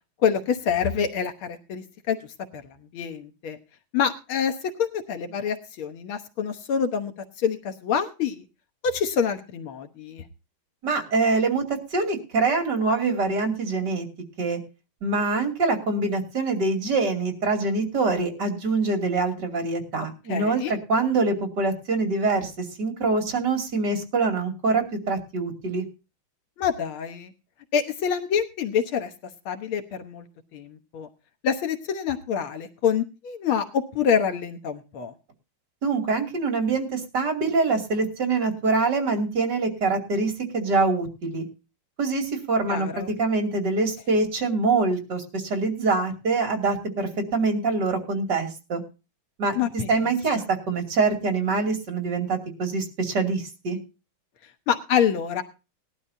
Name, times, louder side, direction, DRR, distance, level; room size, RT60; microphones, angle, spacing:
voice 1, 0.2-2.2 2.5-2.6 2.9-3.6 3.9-4.5 4.8-7.1 7.4-8.4 8.8-10.2 20.3-20.8 26.6-27.3 27.7-29.1 29.5-30.3 30.5-31.1 31.4-35.1 42.7-43.1 49.6-50.1 54.7-55.4, left 7 dB, 90° left, 7 dB, 2.1 m, -26 dB
voice 2, 10.8-14.1 14.4-14.6 15.0-25.8 35.8-41.4 42.0-48.8 49.4-49.6 49.9-53.8, right 3 dB, 55° right, 4 dB, 3.2 m, -25 dB
19.5 x 11.5 x 2.7 m, 0.31 s
omnidirectional pair, 2.2 m